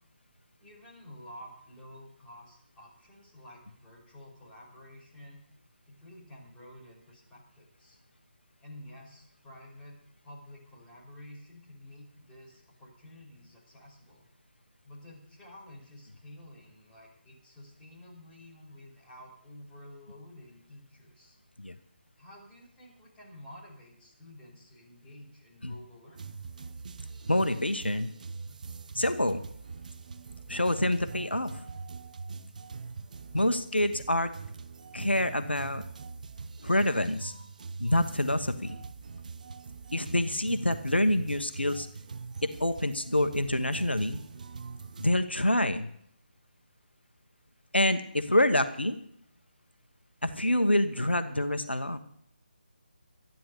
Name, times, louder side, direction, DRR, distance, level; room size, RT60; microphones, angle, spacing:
voice 1, 0.6-5.4 5.9-8.0 8.6-10.0 10.2-14.3 14.8-21.4 22.2-26.2, left 1 dB, 10° left, -6 dB, 5.3 m, -51 dB
sound 1, 26.2-45.1, right 4 dB, 50° right, 0.9 m, -43 dB
voice 2, 27.3-28.1 28.9-29.4 30.5-31.7 33.3-34.3 34.9-35.8 36.6-37.3 37.8-38.7 39.9-41.9 42.4-44.2 45.0-45.9 47.7-49.0 50.2-52.0, left 1 dB, 90° left, 9 dB, 1.2 m, -27 dB
13.5 x 11.0 x 6.8 m, 0.68 s
figure-of-eight pair, 150°, 6 cm